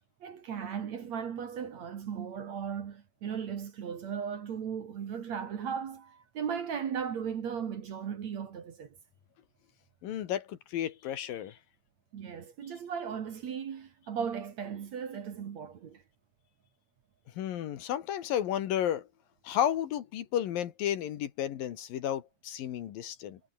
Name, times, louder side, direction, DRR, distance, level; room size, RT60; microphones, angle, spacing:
voice 1, 0.2-8.9 12.1-16.0, right 7 dB, 55° right, 2.7 m, -37 dB
voice 2, 10.0-11.6 17.4-19.1 19.4-23.4, left 11 dB, 70° left, 3.0 m, -32 dB
omnidirectional pair, 4.5 m